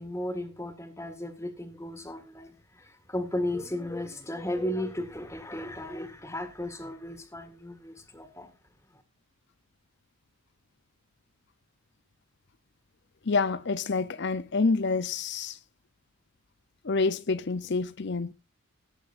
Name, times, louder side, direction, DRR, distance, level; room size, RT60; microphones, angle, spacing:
voice 1, 0.0-8.5, left 1 dB, 15° left, 1.7 m, -35 dB
voice 2, 13.2-15.6 16.8-18.3, left 4 dB, 50° left, 0.6 m, -27 dB
17.5 x 8.3 x 2.5 m
head